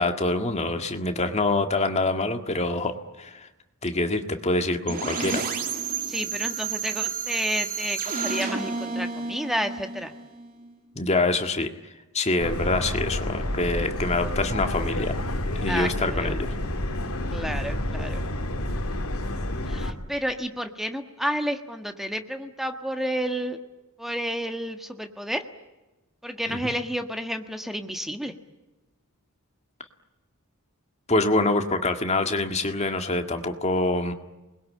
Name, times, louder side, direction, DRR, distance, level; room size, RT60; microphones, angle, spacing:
voice 1, 0.0-3.5 3.8-5.4 11.0-11.7 12.1-15.2 15.6-16.5 26.5-26.7 31.1-34.1, left 2 dB, 30° left, 6 dB, 1.9 m, -25 dB
sound 1, 4.9-10.7, right 5 dB, 40° right, 2.8 m, -31 dB
voice 2, 6.1-10.1 15.7-16.3 17.3-18.2 19.7-23.6 24.0-25.4 26.2-28.3, equal, ahead, 6 dB, 1.4 m, -30 dB
Subway metro underground, 12.4-19.9, left 1 dB, 70° left, 2.5 m, -29 dB
28.0 x 21.0 x 8.7 m, 1.0 s
head